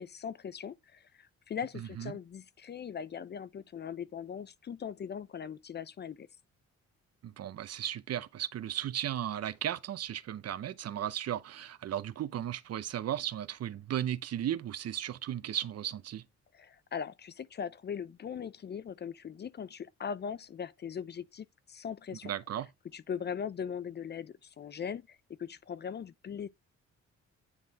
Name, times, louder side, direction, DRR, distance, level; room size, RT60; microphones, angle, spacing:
voice 1, 0.0-6.3 16.5-22.3 22.9-26.5, left 7 dB, 35° left, 0.4 m, -40 dB
voice 2, 1.7-2.1 7.2-16.2 22.2-22.7, right 11 dB, 55° right, 0.7 m, -35 dB
9.9 x 3.6 x 4.0 m
cardioid pair, 90°, 30 cm